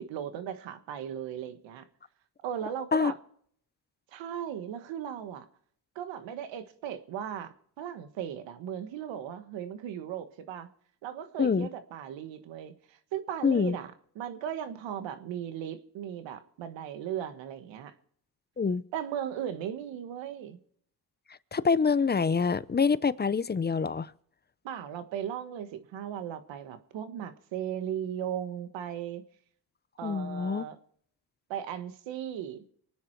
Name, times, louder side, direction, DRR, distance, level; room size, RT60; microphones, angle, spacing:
voice 1, 0.0-1.8 2.4-3.2 4.1-5.5 5.9-10.7 11.0-17.9 18.9-20.6 24.6-29.2 30.0-30.8 31.5-32.7, right 9 dB, 90° right, 1.5 m, -37 dB
voice 2, 11.4-11.7 13.4-13.8 18.6-18.8 21.5-24.1 30.0-30.6, left 5 dB, 25° left, 0.6 m, -26 dB
24.5 x 9.5 x 4.6 m
cardioid pair, 75°, 43 cm